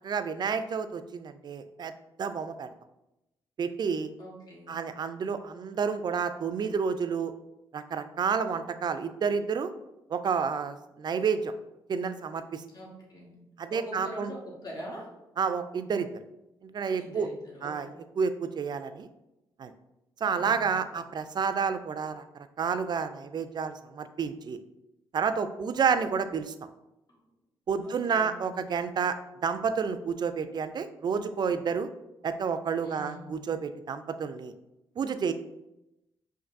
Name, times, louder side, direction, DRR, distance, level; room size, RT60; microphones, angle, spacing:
voice 1, 0.0-1.9 2.2-2.7 3.6-4.1 4.7-7.3 7.7-9.7 10.1-11.5 11.9-12.6 13.6-14.3 15.4-16.1 16.6-17.3 17.6-17.9 18.2-19.1 19.6-19.7 20.2-24.6 25.1-26.5 27.7-29.2 29.4-31.9 32.2-34.5 35.0-35.3, right 6 dB, 50° right, 11 dB, 0.4 m, -30 dB
voice 2, 4.2-4.8 12.7-13.4 13.7-15.1 16.9-17.9 20.2-20.7 27.1-27.2 27.8-28.4 32.8-33.4, equal, 45° left, -3 dB, 1.2 m, -43 dB
5.1 x 2.6 x 2.6 m, 0.92 s
supercardioid pair, 55°, 10 cm